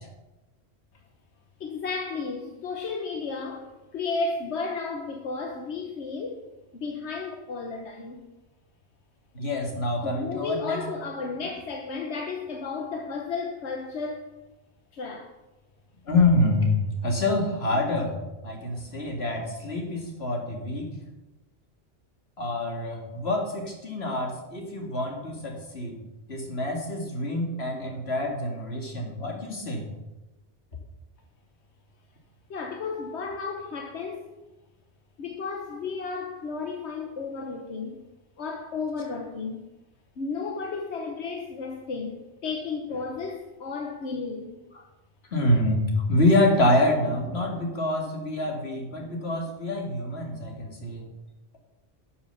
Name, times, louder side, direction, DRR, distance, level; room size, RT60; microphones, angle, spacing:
voice 1, 1.6-6.5 6.7-8.2 10.0-14.3 14.9-15.3 32.5-34.3 35.2-38.0 38.4-39.7 40.2-44.5, left 4 dB, 90° left, 3 dB, 1.3 m, -33 dB
voice 2, 9.3-10.8 16.1-21.0 22.4-26.0 26.3-29.9 45.3-51.1, left 1 dB, 70° left, 1 dB, 2.5 m, -26 dB
12.0 x 7.0 x 7.0 m, 1.0 s
omnidirectional pair, 1.1 m